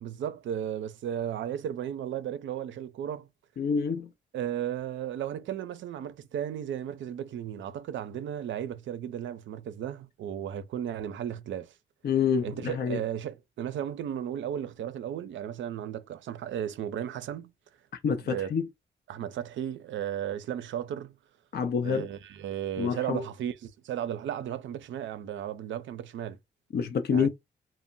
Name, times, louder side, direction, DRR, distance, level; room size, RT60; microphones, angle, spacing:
voice 1, 0.0-3.3 4.3-11.7 12.4-17.5 18.3-18.5 19.1-21.2 21.8-26.4 27.1-27.3, right 10 dB, 70° right, 0.5 m, -35 dB
voice 2, 3.6-4.1 12.0-13.0 18.0-18.7 21.5-22.1 22.8-23.2 26.7-27.3, left 6 dB, 55° left, 0.6 m, -27 dB
2.1 x 2.1 x 3.7 m
supercardioid pair, 45°, 20 cm